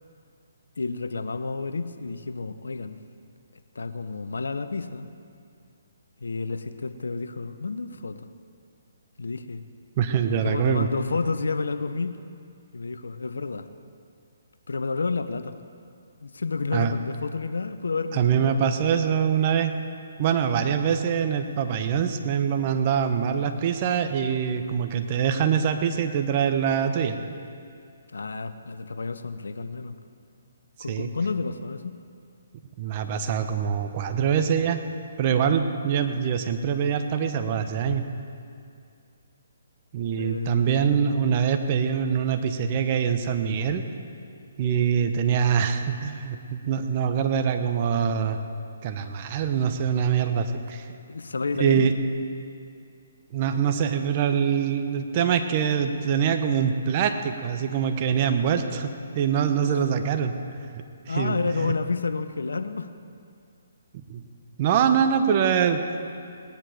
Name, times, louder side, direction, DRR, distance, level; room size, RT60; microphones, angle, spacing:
voice 1, 0.8-3.0 3.7-5.1 6.2-8.2 9.2-9.6 10.3-12.2 12.7-13.7 14.7-15.6 16.2-19.0 28.1-30.0 30.8-32.0 40.2-40.9 51.1-51.9 59.6-59.9 61.1-62.9, left 4 dB, 80° left, 11 dB, 0.8 m, -30 dB
voice 2, 10.0-10.9 16.7-16.9 18.1-19.7 20.2-27.2 30.9-31.1 32.8-34.8 35.2-38.0 39.9-43.8 44.6-48.4 48.8-50.9 51.6-51.9 53.3-60.3 61.1-61.7 64.1-64.2 64.6-65.8, right 7 dB, 35° right, 7 dB, 1.0 m, -24 dB
18.5 x 10.5 x 5.1 m, 2.4 s
hypercardioid pair, 145°, 0 cm